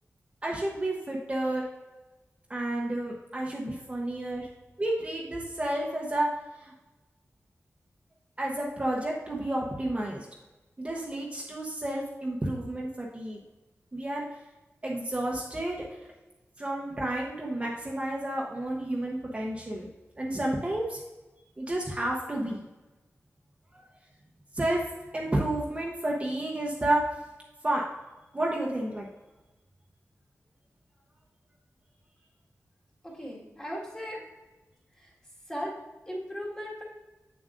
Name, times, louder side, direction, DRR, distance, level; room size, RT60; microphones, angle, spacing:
voice 1, 0.4-1.6 2.5-4.5 4.8-6.3 6.6-6.7 8.4-10.3 10.8-13.4 13.9-14.2 14.8-15.8 16.6-19.9 20.2-21.0 21.6-22.6 23.7-23.8 24.5-24.8 25.1-27.0 27.6-27.8 28.3-29.1, right 1 dB, 25° right, -3 dB, 0.9 m, -30 dB
voice 2, 33.0-34.2 35.0-35.1 35.5-35.7 36.1-36.8, equal, 15° left, -4 dB, 1.9 m, -37 dB
7.9 x 7.2 x 2.6 m, 1.1 s
wide cardioid pair, 120°, 5 cm